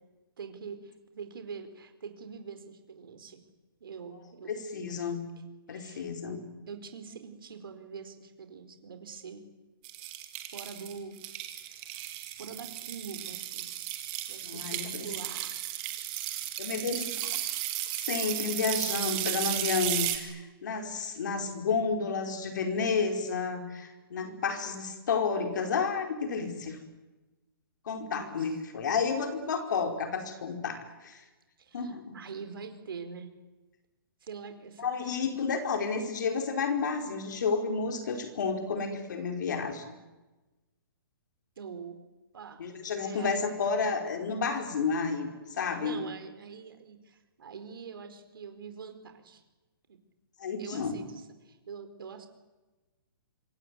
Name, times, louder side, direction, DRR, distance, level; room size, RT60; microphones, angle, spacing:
voice 1, 0.4-3.4 3.8-4.5 5.1-5.2 5.7-6.1 6.7-9.4 10.5-11.2 11.6-12.0 12.4-13.7 14.3-15.6 28.1-28.6 31.6-33.3 34.2-35.2 41.6-42.0 42.3-42.7 42.9-43.5 45.8-49.4 49.9-50.0 50.6-52.3, right 6 dB, 70° right, 8 dB, 4.7 m, -44 dB
voice 2, 4.5-5.2 5.7-6.5 14.4-15.1 16.6-17.4 18.1-26.8 27.9-31.2 31.7-32.2 34.8-40.0 42.6-46.0 50.4-51.0, left 5 dB, 55° left, 5 dB, 4.8 m, -31 dB
sound 1, 9.8-20.2, right 14 dB, 20° right, 2.5 m, -34 dB
26.0 x 23.0 x 9.5 m, 1.1 s
hypercardioid pair, 175°, 12 cm